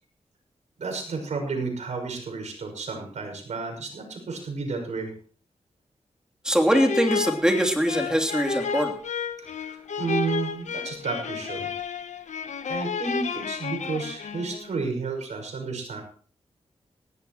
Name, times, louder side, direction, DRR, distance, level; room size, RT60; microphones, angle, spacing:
voice 1, 0.8-5.1 9.4-11.7 12.7-16.0, right 4 dB, 85° right, 3 dB, 6.0 m, -32 dB
voice 2, 6.4-8.9, equal, 5° right, 2 dB, 3.0 m, -22 dB
sound 1, 6.7-14.7, left 6 dB, 85° left, 1.0 m, -32 dB
19.5 x 16.5 x 3.0 m, 0.43 s
wide cardioid pair, 85°, 12 cm